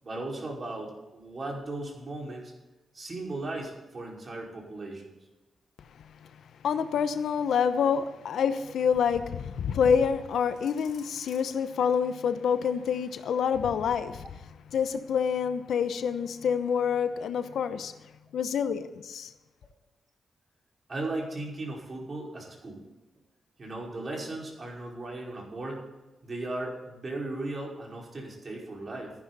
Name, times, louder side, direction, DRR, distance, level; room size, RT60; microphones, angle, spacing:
voice 1, 0.0-2.5 2.9-5.0 20.9-22.8 23.6-25.8 26.2-29.1, right 2 dB, 45° right, 5.2 m, -36 dB
voice 2, 6.6-14.4 14.7-17.9 18.3-19.3, left 7 dB, 80° left, 0.8 m, -27 dB
14.5 x 10.5 x 4.2 m
cardioid pair, 60°, 0 cm